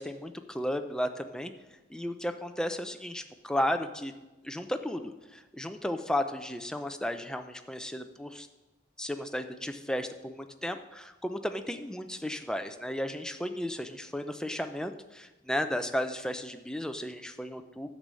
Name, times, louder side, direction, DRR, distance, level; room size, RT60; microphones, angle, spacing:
voice 1, 0.0-1.5 1.9-4.1 4.4-8.5 9.0-17.9, left 1 dB, 5° left, 7 dB, 0.5 m, -34 dB
10.5 x 5.4 x 7.6 m, 1.1 s
head